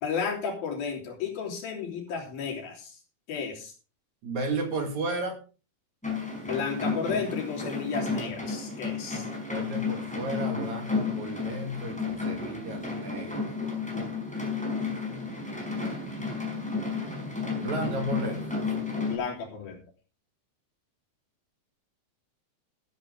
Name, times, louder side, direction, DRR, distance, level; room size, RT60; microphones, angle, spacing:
voice 1, 0.0-3.0 3.3-3.7 6.5-9.3 19.1-19.8, left 6 dB, 75° left, 0 dB, 5.0 m, -33 dB
voice 2, 4.2-5.4 9.5-13.4 17.6-18.6, right 2 dB, 55° right, 4 dB, 3.5 m, -33 dB
sound 1, 6.0-19.2, left 4 dB, ahead, 4.7 m, -32 dB
13.0 x 13.0 x 3.4 m, 0.34 s
omnidirectional pair, 4.2 m